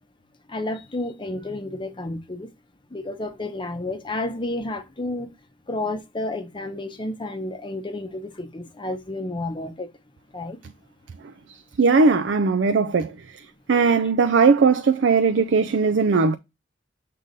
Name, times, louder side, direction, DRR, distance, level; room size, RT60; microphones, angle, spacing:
voice 1, 0.5-2.5 2.9-5.3 5.7-9.9 10.3-10.6 13.9-14.0, left 2 dB, 25° left, 0.7 m, -31 dB
voice 2, 11.8-13.1 13.7-16.4, right 4 dB, 70° right, 0.4 m, -18 dB
6.7 x 3.8 x 4.0 m
head